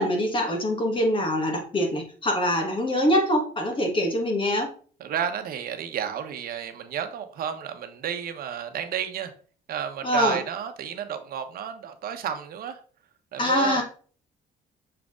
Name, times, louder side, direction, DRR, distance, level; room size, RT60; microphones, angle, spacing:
voice 1, 0.0-4.7 10.0-10.4 13.4-13.8, left 1 dB, 30° left, 1 dB, 1.5 m, -24 dB
voice 2, 5.0-9.3 9.7-12.8 13.3-13.8, right 9 dB, 60° right, 7 dB, 1.1 m, -31 dB
6.7 x 3.8 x 3.7 m, 0.42 s
cardioid pair, 110°, 17 cm